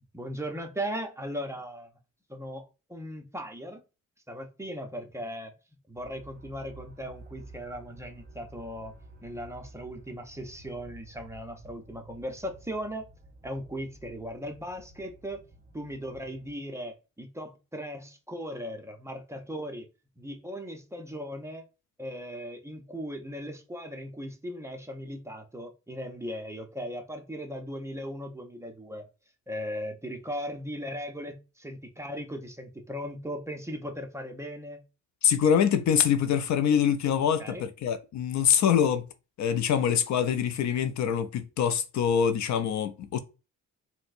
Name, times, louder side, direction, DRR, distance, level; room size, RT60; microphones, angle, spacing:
voice 1, 0.1-1.9 2.3-2.6 2.9-3.8 4.3-5.5 5.9-8.9 9.2-13.0 13.4-15.4 15.7-19.9 20.2-21.6 22.0-29.1 29.5-34.8 37.4-37.7, equal, 10° right, 0.6 m, -38 dB
sound 1, 5.9-16.5, right 1 dB, 25° right, 1.7 m, -51 dB
voice 2, 35.2-39.1 39.4-43.2, left 8 dB, 60° left, 0.5 m, -24 dB
4.2 x 2.1 x 2.5 m
cardioid pair, 110°, 32 cm